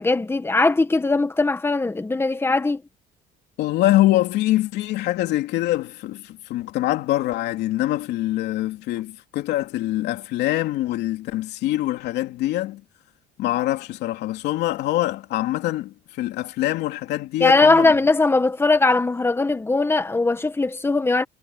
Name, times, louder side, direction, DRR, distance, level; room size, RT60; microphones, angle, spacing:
voice 1, 0.0-2.8 17.4-21.2, left 3 dB, 15° left, 1.7 m, -20 dB
voice 2, 3.6-12.8 13.4-17.9, left 15 dB, 85° left, 3.0 m, -24 dB
cardioid pair, 110°, 17 cm